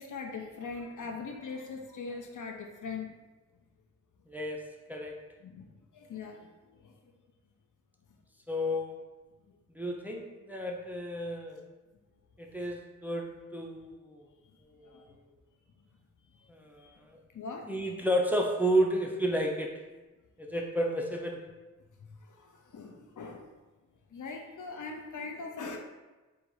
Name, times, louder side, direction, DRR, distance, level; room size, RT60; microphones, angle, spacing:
voice 1, 0.0-3.1 5.5-5.6 6.1-6.4 17.4-17.7 22.7-23.4 24.1-25.8, left 4 dB, 90° left, 2 dB, 0.5 m, -40 dB
voice 2, 4.3-4.6 4.9-5.1 8.5-9.0 9.8-11.6 12.4-13.3 13.5-14.2 16.5-17.1 17.7-19.7 20.4-21.4, equal, 5° right, 0 dB, 0.4 m, -31 dB
3.9 x 2.3 x 4.5 m, 1.2 s
wide cardioid pair, 70°, 30 cm